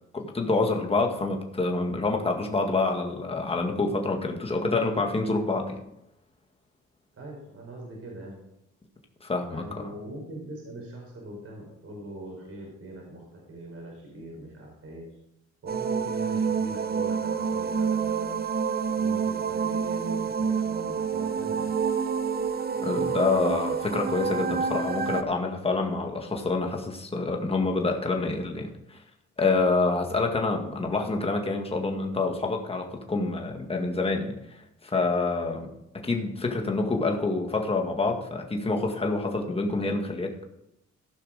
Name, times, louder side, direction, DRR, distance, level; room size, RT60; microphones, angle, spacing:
voice 1, 0.1-5.8 9.2-9.8 22.8-29.0 29.4-40.4, left 3 dB, 20° left, 2 dB, 1.8 m, -27 dB
voice 2, 7.1-8.4 9.5-15.2 15.6-18.4 18.9-21.7, right 1 dB, 50° right, -1 dB, 4.2 m, -41 dB
sound 1, 15.7-25.2, right 6 dB, 30° right, 0.7 m, -28 dB
15.0 x 5.8 x 5.1 m, 0.84 s
cardioid pair, 90°, 30 cm